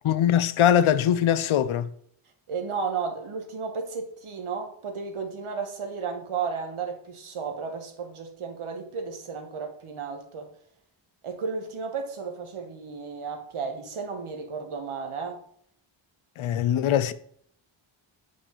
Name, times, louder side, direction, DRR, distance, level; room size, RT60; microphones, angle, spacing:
voice 1, 0.0-1.9 16.4-17.1, left 10 dB, 80° left, 0.5 m, -22 dB
voice 2, 2.5-10.5 11.2-15.4, right 5 dB, 90° right, 1.1 m, -33 dB
7.5 x 5.1 x 3.0 m
wide cardioid pair, 105°, 48 cm